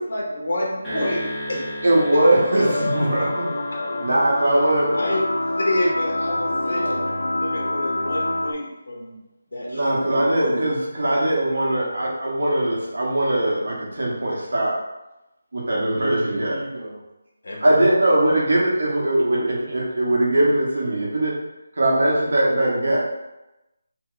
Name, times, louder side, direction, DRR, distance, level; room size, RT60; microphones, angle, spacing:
voice 1, 0.0-1.6 5.0-5.2 5.6-6.8 7.4-9.2 9.5-10.1 10.4-10.7 17.4-17.6, left 1 dB, 65° left, -3 dB, 1.0 m, -28 dB
sound 1, 0.8-5.3, equal, 5° left, 0.7 m, -35 dB
voice 2, 1.8-3.5 4.0-5.0 9.7-14.7 15.5-16.6 17.6-21.3 21.7-23.1, right 1 dB, 60° right, -4 dB, 1.0 m, -20 dB
sound 2, 2.6-8.5, left 2 dB, 85° left, 0.3 m, -26 dB
voice 3, 2.8-4.0 6.5-7.2 16.0-17.0 19.3-19.8, right 1 dB, 40° right, -2 dB, 0.5 m, -35 dB
2.9 x 2.2 x 3.7 m, 0.97 s
figure-of-eight pair, 180°, 0 cm